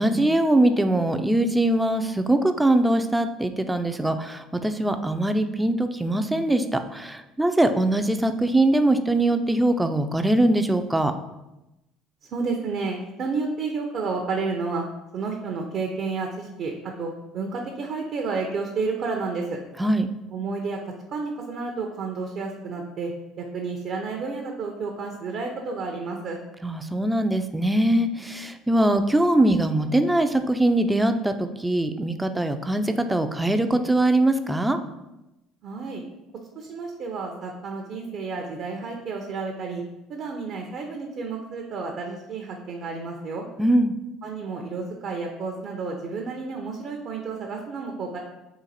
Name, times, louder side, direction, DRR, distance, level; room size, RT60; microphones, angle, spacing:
voice 1, 0.0-11.1 19.8-20.1 26.6-34.8 43.6-43.9, right 1 dB, 10° right, 8 dB, 0.4 m, -22 dB
voice 2, 12.3-14.8 15.1-19.6 20.3-20.8 21.1-23.1 23.4-26.4 35.6-36.0 36.6-39.8 40.1-43.5 44.2-48.2, right 4 dB, 55° right, 2 dB, 0.5 m, -31 dB
3.9 x 2.5 x 4.1 m, 0.95 s
supercardioid pair, 80°, 0 cm